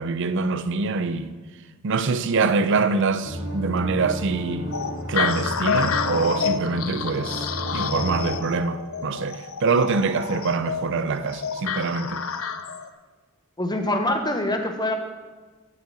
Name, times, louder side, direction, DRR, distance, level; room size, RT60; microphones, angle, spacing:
voice 1, 0.0-1.3 1.8-4.7 5.1-12.2, right 4 dB, 60° right, 0.6 m, -24 dB
sound 1, 3.2-8.4, equal, 90° right, 3.4 m, -32 dB
sound 2, 4.7-12.9, left 6 dB, 75° left, 0.7 m, -29 dB
voice 2, 13.6-14.9, left 1 dB, 20° left, 1.1 m, -24 dB
8.4 x 6.6 x 8.3 m
head